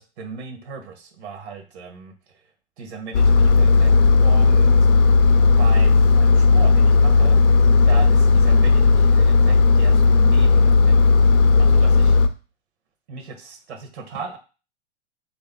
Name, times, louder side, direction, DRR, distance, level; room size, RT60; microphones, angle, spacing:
voice 1, 0.0-2.1 2.8-3.9 4.2-4.8 5.6-7.4 7.8-11.0 11.5-12.2 13.1-14.4, right 4 dB, 65° right, 6 dB, 0.9 m, -36 dB
Engine, 3.1-12.3, left 4 dB, 75° left, 0.6 m, -14 dB
3.4 x 2.7 x 3.4 m, 0.33 s
figure-of-eight pair, 100°, 35 cm